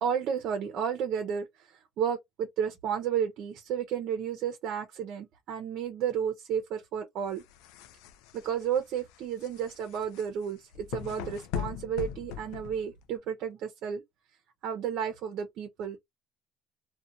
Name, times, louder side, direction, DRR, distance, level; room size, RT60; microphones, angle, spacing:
voice 1, 0.0-7.4 8.3-14.0 14.6-16.0, right 8 dB, 60° right, 0.6 m, -32 dB
sound 1, 7.3-13.2, left 9 dB, 85° left, 0.4 m, -40 dB
2.6 x 2.1 x 2.5 m
cardioid pair, 110°, 0 cm